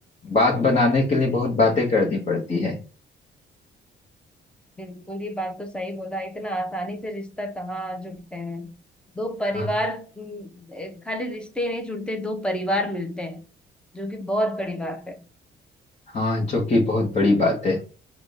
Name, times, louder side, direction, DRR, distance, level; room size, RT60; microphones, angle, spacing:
voice 1, 0.2-2.7 9.5-9.7 16.1-17.8, left 3 dB, 35° left, 1.1 m, -21 dB
voice 2, 4.8-8.7 9.1-13.4 13.9-15.2, equal, 5° left, 0.9 m, -29 dB
3.8 x 2.5 x 3.5 m
cardioid pair, 90°, 20 cm